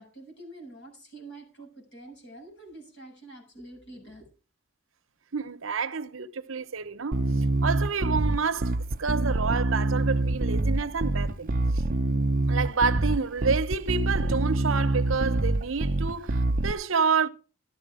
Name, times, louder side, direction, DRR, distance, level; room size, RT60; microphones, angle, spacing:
voice 1, 0.0-4.3, right 2 dB, 65° left, 7.4 m, -46 dB
voice 2, 5.3-11.8 12.5-17.3, right 5 dB, 75° right, 0.9 m, -29 dB
Bass guitar, 7.1-16.7, right 2 dB, 45° right, 0.6 m, -26 dB
14.0 x 11.0 x 4.9 m
head